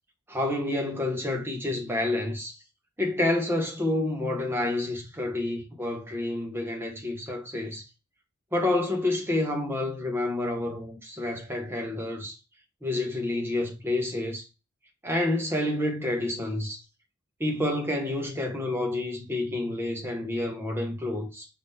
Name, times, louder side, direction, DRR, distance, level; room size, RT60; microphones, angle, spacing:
voice 1, 0.3-2.6 3.0-7.8 8.5-12.3 12.8-14.5 15.0-16.8 17.4-21.5, left 1 dB, 10° right, 1.0 m, -29 dB
5.0 x 2.7 x 3.5 m
head